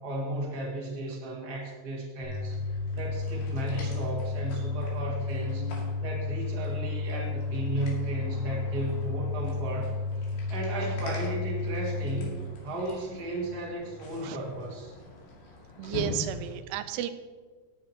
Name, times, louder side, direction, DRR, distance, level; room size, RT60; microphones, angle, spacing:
voice 1, 0.0-2.6 2.9-5.7 6.0-9.9 10.3-14.9, right 1 dB, 40° right, -3 dB, 1.4 m, -34 dB
sound 1, 2.2-12.2, left 3 dB, 60° right, 5.3 m, -32 dB
sound 2, 2.3-16.6, left 3 dB, 80° left, 4.5 m, -44 dB
voice 2, 15.8-17.1, right 11 dB, 85° right, 10 dB, 2.5 m, -33 dB
17.5 x 7.4 x 2.9 m, 1.4 s
omnidirectional pair, 5.1 m